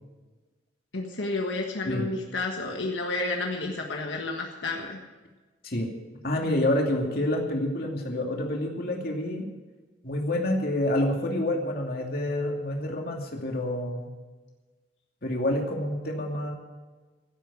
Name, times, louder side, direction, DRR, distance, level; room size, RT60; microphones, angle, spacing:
voice 1, 0.9-5.0, left 2 dB, 85° left, 1 dB, 1.6 m, -31 dB
voice 2, 6.2-9.4 10.0-14.1 15.2-16.5, left 1 dB, 55° left, 1 dB, 2.6 m, -28 dB
15.5 x 8.3 x 8.5 m, 1.3 s
head